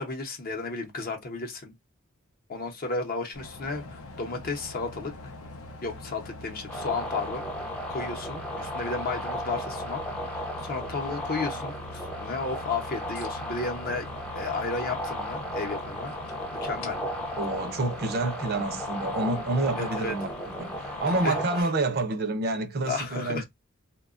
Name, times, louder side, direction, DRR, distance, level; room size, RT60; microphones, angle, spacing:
voice 1, 0.0-1.7 2.5-5.1 5.8-7.5 7.9-10.0 10.3-14.1 14.3-16.1 16.6-17.0 19.7-20.1 21.2-21.4 22.8-23.4, left 3 dB, 45° left, 0.7 m, -33 dB
sound 1, 3.3-21.4, left 2 dB, 90° left, 0.6 m, -43 dB
sound 2, 6.7-21.6, equal, 5° left, 0.5 m, -35 dB
voice 2, 17.4-20.3 20.6-23.4, right 2 dB, 50° right, 0.5 m, -28 dB
2.8 x 2.2 x 2.4 m
head